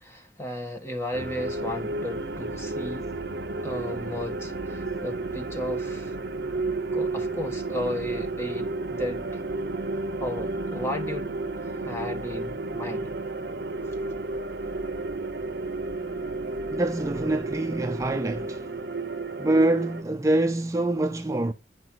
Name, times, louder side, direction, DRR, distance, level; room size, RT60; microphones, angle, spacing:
voice 1, 0.0-3.1 3.6-6.1 6.9-9.4 10.2-11.4 11.6-13.1 13.9-14.0, left 1 dB, 15° left, 1.3 m, -34 dB
sound 1, 1.1-20.0, right 2 dB, 55° right, 0.9 m, -32 dB
voice 2, 16.7-18.7 19.4-21.5, right 2 dB, 15° right, 0.4 m, -25 dB
9.6 x 5.1 x 5.9 m
head